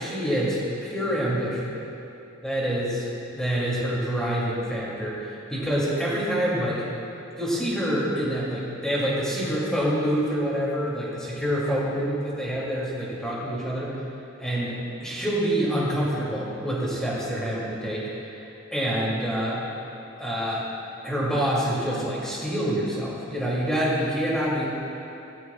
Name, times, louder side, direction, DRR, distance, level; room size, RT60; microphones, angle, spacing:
voice 1, 0.0-1.8 2.4-3.1 3.3-6.8 7.4-14.0 14.4-18.1 18.7-19.6 20.2-20.7 21.0-24.7, equal, 5° left, -7 dB, 2.8 m, -26 dB
18.0 x 13.5 x 2.5 m, 3.0 s
head